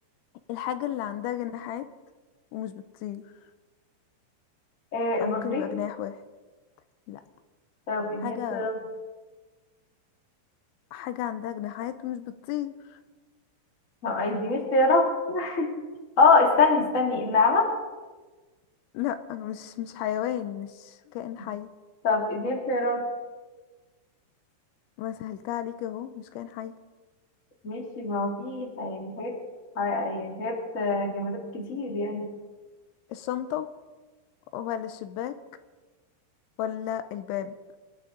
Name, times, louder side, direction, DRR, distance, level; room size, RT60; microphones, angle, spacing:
voice 1, 0.5-1.9 2.5-3.2 5.2-6.2 7.1-7.2 8.2-8.7 10.9-13.0 18.9-21.7 25.0-26.7 33.1-33.7 34.5-35.3 36.6-37.5, left 11 dB, 85° left, 11 dB, 2.9 m, -33 dB
voice 2, 4.9-5.6 7.9-8.8 14.0-15.7 16.2-17.7 22.0-23.0 27.6-29.4 29.7-32.2, left 3 dB, 40° left, 1 dB, 1.1 m, -25 dB
25.5 x 12.0 x 3.9 m, 1.3 s
omnidirectional pair, 5.5 m